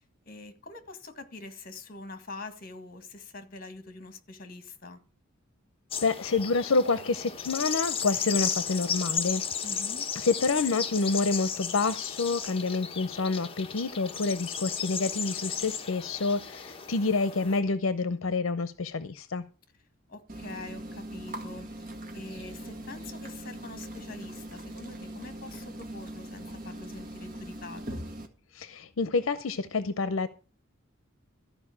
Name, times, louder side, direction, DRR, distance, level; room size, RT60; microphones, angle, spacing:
voice 1, 0.3-5.0 9.6-10.1 20.1-21.9 22.1-28.0, left 3 dB, 45° left, 1.8 m, -44 dB
sound 1, 5.9-17.6, left 7 dB, 25° left, 1.0 m, -34 dB
voice 2, 6.0-9.4 10.2-19.4 28.5-30.3, left 3 dB, 75° left, 0.7 m, -28 dB
sound 2, 20.3-28.3, right 1 dB, 40° right, 1.8 m, -41 dB
13.5 x 5.1 x 8.7 m
head